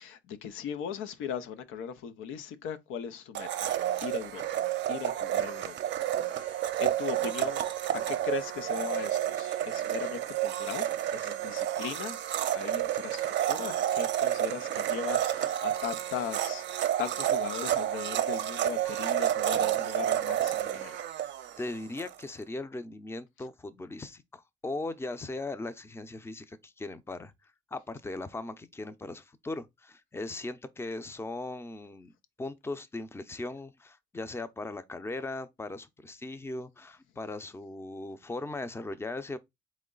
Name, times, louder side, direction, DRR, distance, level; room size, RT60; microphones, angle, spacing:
voice 1, 0.0-7.6 7.9-12.2 12.5-21.0, left 8 dB, 90° left, 0.6 m, -39 dB
Domestic sounds home sounds, 3.3-22.1, right 11 dB, 65° right, 0.5 m, -30 dB
voice 2, 21.2-27.3 27.7-32.1 32.4-39.4, left 2 dB, 10° left, 0.5 m, -38 dB
3.8 x 3.1 x 3.8 m
cardioid pair, 90°, 20 cm